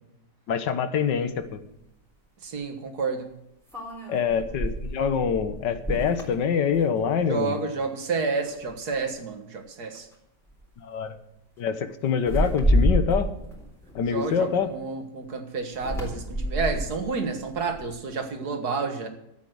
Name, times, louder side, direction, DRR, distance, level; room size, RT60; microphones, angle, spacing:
voice 1, 0.5-1.6 4.1-7.6 10.8-11.1 11.6-13.3 13.9-14.7, left 7 dB, 90° left, 11 dB, 1.7 m, -25 dB
sound 1, 1.4-1.5 3.7-7.3 7.7-8.0 8.4-9.1 9.9-10.1 10.5-10.8 12.2-14.8 15.7-18.1, equal, ahead, 3.7 m, -29 dB
voice 2, 2.4-3.3 7.3-10.1 14.1-19.1, right 4 dB, 65° right, 7 dB, 2.1 m, -30 dB
13.5 x 8.4 x 7.8 m, 0.81 s
omnidirectional pair, 1.8 m